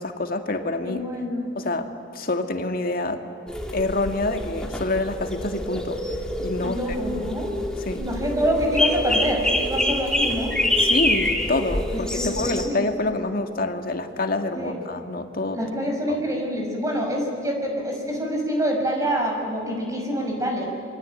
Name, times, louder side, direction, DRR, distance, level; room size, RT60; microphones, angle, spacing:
voice 1, 0.0-1.0 1.6-3.2 3.7-6.0 6.4-6.8 7.9-8.1 10.8-15.6 16.1-16.2, left 2 dB, 50° left, 6 dB, 2.0 m, -27 dB
voice 2, 0.8-1.5 6.6-7.5 8.0-10.6 11.9-12.8 14.6-14.7 15.5-20.7, equal, 15° right, 1 dB, 5.9 m, -26 dB
sound 1, 3.5-12.7, left 1 dB, 5° left, 2.6 m, -26 dB
27.5 x 23.0 x 9.0 m, 2.6 s
head